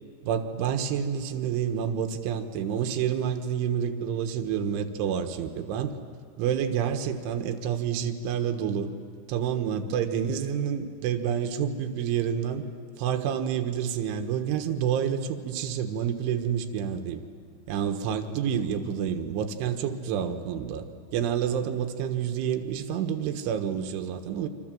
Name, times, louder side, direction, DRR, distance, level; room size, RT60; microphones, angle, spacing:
voice 1, 0.2-5.9 6.4-8.9 9.3-12.6 13.0-17.2 17.7-20.9 21.1-24.5, right 8 dB, 75° right, 6 dB, 3.7 m, -28 dB
28.0 x 25.5 x 7.7 m, 2.4 s
omnidirectional pair, 5.8 m